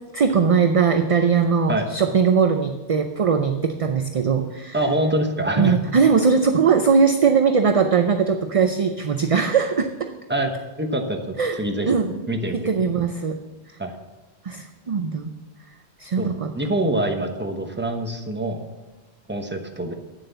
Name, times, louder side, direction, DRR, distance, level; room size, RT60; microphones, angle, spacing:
voice 1, 0.1-4.8 5.6-10.1 11.4-11.6 11.8-12.2 12.5-13.4 14.4-15.3 16.0-16.5, right 6 dB, 45° right, 7 dB, 0.5 m, -20 dB
voice 2, 4.7-5.7 10.3-10.5 10.8-12.0 12.3-12.7 13.8-13.9 16.2-16.3 16.5-18.6 19.3-19.9, right 1 dB, 10° right, 4 dB, 1.0 m, -25 dB
9.1 x 7.6 x 6.8 m, 1.1 s
omnidirectional pair, 1.1 m